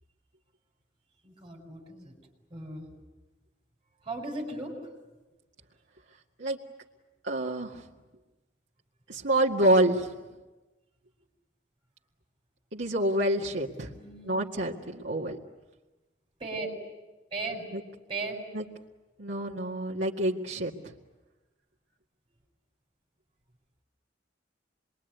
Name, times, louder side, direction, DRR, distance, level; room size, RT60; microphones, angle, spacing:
voice 1, 1.2-2.1 2.5-2.9 4.0-4.8 13.8-14.5 16.4-16.7 17.3-17.6 18.1-18.4, right 3 dB, 25° right, 1 dB, 7.0 m, -37 dB
voice 2, 7.2-7.8 9.1-10.1 12.7-13.9 14.3-15.4 17.7-17.8 18.5-18.6 19.2-20.9, right 1 dB, 75° right, -2 dB, 2.0 m, -27 dB
27.5 x 22.0 x 9.4 m, 1.1 s
head